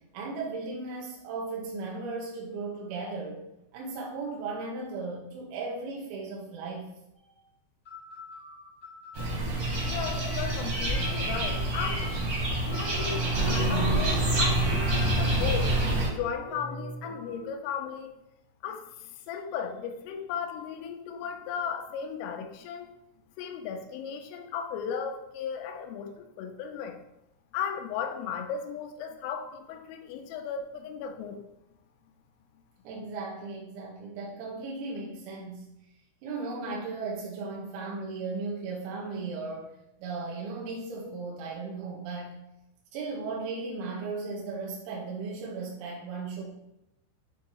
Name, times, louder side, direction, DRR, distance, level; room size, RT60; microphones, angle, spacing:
voice 1, 0.1-3.4 3.7-6.9 9.8-10.3 32.8-35.7 36.2-39.7 40.0-42.4 42.9-46.4, right 3 dB, 80° right, -3 dB, 2.3 m, -36 dB
sound 1, 7.2-7.3 7.8-15.4 15.9-17.6, left 2 dB, 60° left, 1.1 m, -45 dB
sound 2, 9.1-16.1, right 1 dB, 50° right, 2.0 m, -27 dB
voice 2, 9.9-12.2 12.6-15.8 16.1-18.1 18.6-22.9 23.4-27.0 27.5-31.4, left 7 dB, 85° left, 4 dB, 3.3 m, -36 dB
8.2 x 2.8 x 4.6 m, 0.87 s
omnidirectional pair, 5.8 m